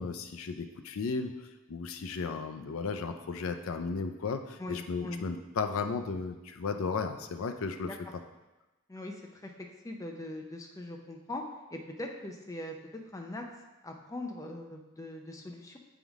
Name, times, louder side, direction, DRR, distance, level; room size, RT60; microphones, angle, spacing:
voice 1, 0.0-1.3 1.7-7.9, left 4 dB, 70° left, 7 dB, 0.4 m, -34 dB
voice 2, 4.6-5.2 7.8-8.0 8.9-9.5 9.8-12.8 13.1-13.5 13.8-15.8, left 1 dB, 15° left, 2 dB, 0.5 m, -41 dB
7.4 x 3.6 x 3.5 m, 1.1 s
head